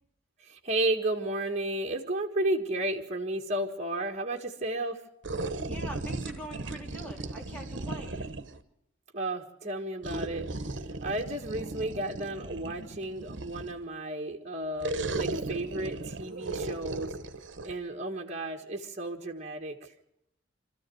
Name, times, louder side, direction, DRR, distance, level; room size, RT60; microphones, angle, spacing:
voice 1, 0.4-5.0 9.1-10.5 11.0-17.2 17.7-19.9, right 1 dB, 35° right, 2 dB, 1.7 m, -33 dB
sound 1, 5.2-8.6 10.0-13.8 14.8-17.7, right 2 dB, 65° right, 1.2 m, -36 dB
voice 2, 5.7-8.3, right 1 dB, 5° left, -1 dB, 3.6 m, -43 dB
25.5 x 14.0 x 7.8 m, 0.80 s
head